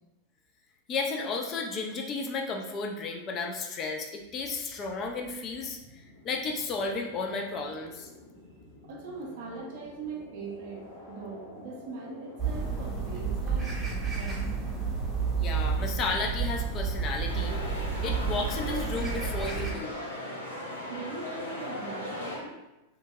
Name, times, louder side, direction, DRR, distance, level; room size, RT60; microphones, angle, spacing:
voice 1, 0.9-5.8 6.2-8.1 15.4-20.0, left 3 dB, 30° left, 1 dB, 0.4 m, -33 dB
sound 1, 4.2-17.6, left 1 dB, 60° left, 1.4 m, -51 dB
voice 2, 8.8-13.7 14.1-14.6 20.9-22.6, right 4 dB, 50° right, 1 dB, 0.5 m, -41 dB
sound 2, 12.4-19.7, right 5 dB, 10° right, 0.7 m, -31 dB
sound 3, 17.3-22.4, left 1 dB, 85° left, 0.7 m, -37 dB
2.8 x 2.6 x 2.3 m, 0.98 s
figure-of-eight pair, 90°, 0 cm